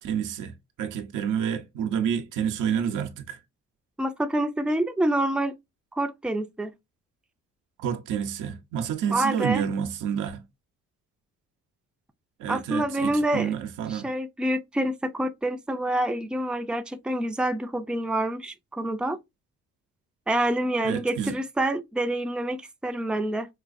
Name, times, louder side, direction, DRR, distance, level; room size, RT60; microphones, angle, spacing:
voice 1, 0.0-0.5 0.8-3.4 7.8-10.4 12.4-14.1 20.8-21.4, right 8 dB, 90° right, 0.8 m, -29 dB
voice 2, 4.0-5.6 6.0-6.7 9.1-9.6 12.5-13.5 13.9-19.2 20.3-23.5, right 1 dB, 5° right, 0.5 m, -27 dB
4.6 x 2.4 x 2.5 m
cardioid pair, 90°, 30 cm